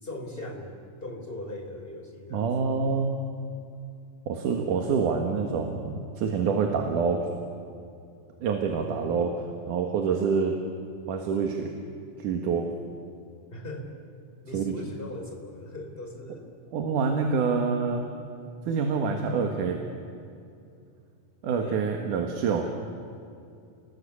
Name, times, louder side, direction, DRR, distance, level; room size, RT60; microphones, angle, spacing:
voice 1, 0.0-2.7 8.7-9.3 13.5-13.9 14.4-16.5 21.6-21.9, left 1 dB, 15° left, 3 dB, 3.4 m, -39 dB
voice 2, 2.3-3.1 4.3-7.2 8.4-9.3 9.7-10.6 11.1-11.7 12.2-12.7 14.5-14.7 16.7-18.0 18.7-19.8 21.4-22.7, right 5 dB, 80° right, 3 dB, 3.1 m, -26 dB
28.5 x 20.5 x 8.5 m, 2.5 s
omnidirectional pair, 3.7 m